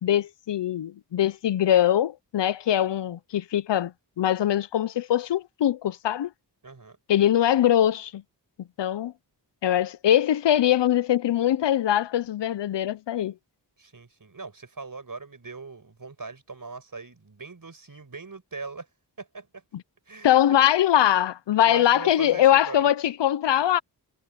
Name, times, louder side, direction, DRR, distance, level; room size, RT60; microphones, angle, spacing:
voice 1, 0.0-6.3 7.1-8.2 8.8-9.1 9.6-13.3 20.2-23.8, left 11 dB, 85° left, 0.7 m, -22 dB
voice 2, 6.6-7.0 13.8-18.9 19.2-19.6 20.1-20.6 21.6-22.8, right 4 dB, 50° right, 5.9 m, -41 dB
cardioid pair, 40°, 42 cm